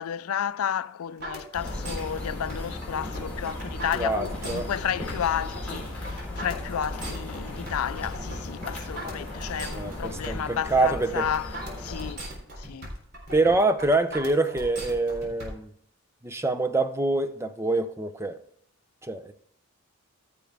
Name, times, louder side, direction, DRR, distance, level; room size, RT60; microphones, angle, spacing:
voice 1, 0.0-12.2 12.6-12.9, left 9 dB, 80° left, 0.4 m, -32 dB
sound 1, 1.2-15.5, right 1 dB, 45° right, 3.6 m, -39 dB
sound 2, 1.5-12.1, left 2 dB, 5° left, 3.8 m, -37 dB
voice 2, 3.9-4.7 9.7-11.3 13.3-15.7 16.2-18.4 19.0-19.3, right 2 dB, 10° right, 0.6 m, -25 dB
15.0 x 6.8 x 3.4 m
head